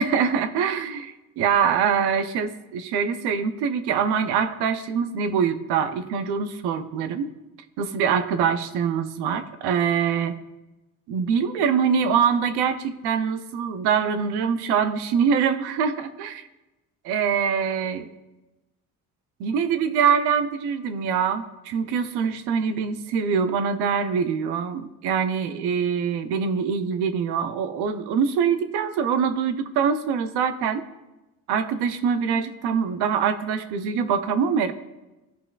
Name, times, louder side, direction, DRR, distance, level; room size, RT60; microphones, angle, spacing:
voice 1, 0.0-7.3 7.8-10.4 11.1-16.5 17.0-18.1 19.4-30.8 31.5-34.7, right 7 dB, 90° right, 10 dB, 0.7 m, -24 dB
16.5 x 5.5 x 2.4 m, 1.0 s
supercardioid pair, 75°, 38 cm